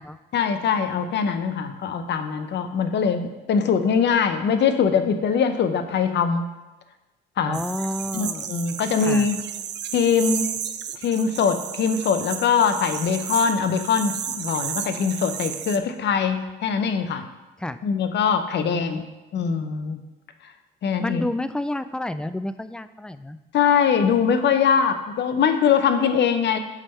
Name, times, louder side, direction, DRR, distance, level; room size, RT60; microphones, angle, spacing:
voice 1, 0.3-6.5 7.4-7.6 8.1-9.4 9.9-10.5 11.0-17.3 17.8-19.0 19.3-20.0 20.4-20.5 20.8-21.2 23.5-26.6, left 6 dB, 60° left, 9 dB, 0.7 m, -22 dB
voice 2, 7.4-8.5 9.0-9.3 17.6-17.8 18.6-19.0 21.0-23.4, left 1 dB, 5° left, 12 dB, 0.3 m, -30 dB
sound 1, 7.5-15.8, right 9 dB, 60° right, 0.6 m, -33 dB
8.2 x 3.5 x 5.5 m, 1.1 s
cardioid pair, 90°, 20 cm